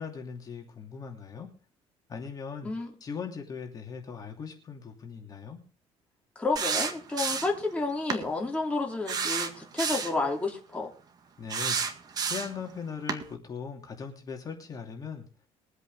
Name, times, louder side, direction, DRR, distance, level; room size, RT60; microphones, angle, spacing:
voice 1, 0.0-1.5 2.1-2.7 3.0-5.6 11.4-12.0 12.3-15.2, left 6 dB, 35° left, 2.9 m, -39 dB
voice 2, 6.3-10.9, left 3 dB, 10° left, 3.1 m, -30 dB
sound 1, 6.6-7.6 8.1-8.2 9.1-10.2 11.5-12.6 13.1-13.2, right 5 dB, 35° right, 1.9 m, -30 dB
22.5 x 8.1 x 3.7 m
cardioid pair, 135°, 11 cm